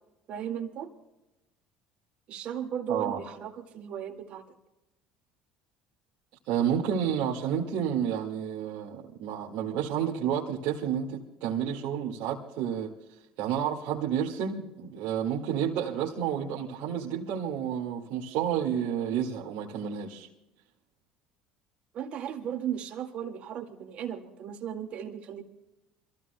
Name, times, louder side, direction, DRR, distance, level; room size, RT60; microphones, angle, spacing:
voice 1, 0.3-0.9 2.3-4.4 21.9-25.4, right 9 dB, 55° right, 4 dB, 2.0 m, -36 dB
voice 2, 2.9-3.2 6.5-12.9 13.4-20.3, right 8 dB, 70° right, -5 dB, 1.9 m, -30 dB
27.0 x 15.0 x 2.2 m, 0.94 s
supercardioid pair, 90°, 3 cm